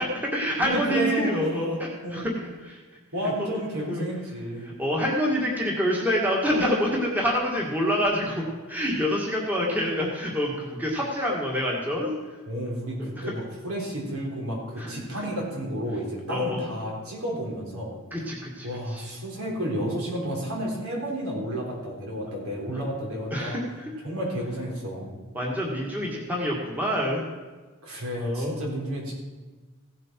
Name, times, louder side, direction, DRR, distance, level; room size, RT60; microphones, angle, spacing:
voice 1, 0.0-2.3 2.6-2.8 3.4-3.5 3.9-4.0 4.6-12.1 13.0-13.3 14.8-15.3 16.3-16.6 18.1-19.1 23.3-23.9 25.3-27.3 28.2-28.5, equal, 10° right, -3 dB, 1.8 m, -27 dB
voice 2, 0.6-1.4 2.0-2.3 3.1-4.7 12.5-18.0 18.6-23.6 24.0-25.1 27.8-29.1, equal, 75° right, -3 dB, 3.8 m, -31 dB
16.5 x 7.8 x 4.5 m, 1.3 s
head